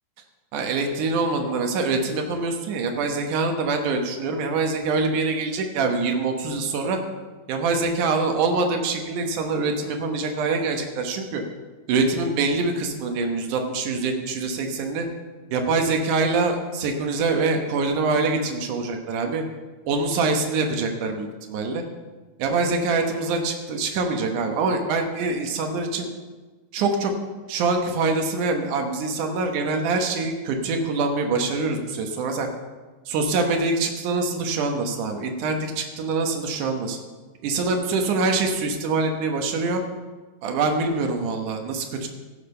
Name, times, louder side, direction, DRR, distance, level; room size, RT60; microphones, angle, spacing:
voice 1, 0.5-7.0 7.5-11.4 11.9-15.1 15.5-19.4 19.9-21.8 22.4-26.1 26.7-27.1 27.5-32.5 33.1-37.0 37.4-39.8 40.4-42.1, right 3 dB, 70° right, 4 dB, 2.6 m, -24 dB
15.5 x 6.7 x 5.5 m, 1.3 s
omnidirectional pair, 3.9 m